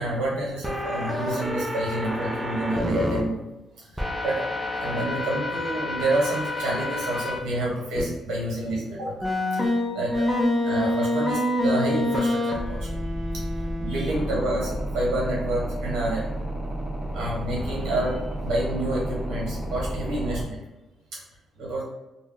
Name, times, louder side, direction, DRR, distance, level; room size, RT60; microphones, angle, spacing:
voice 1, 0.0-3.4 3.7-9.1 9.5-9.6 9.9-16.4 17.1-20.6 21.1-21.2 21.6-21.8, right 1 dB, 80° right, -4 dB, 1.1 m, -29 dB
sound 1, 0.6-3.2 4.0-7.4 8.0-8.1 9.2-20.4, left 1 dB, 5° right, 0.5 m, -28 dB
2.2 x 2.2 x 3.7 m, 1.0 s
cardioid pair, 90°, 0 cm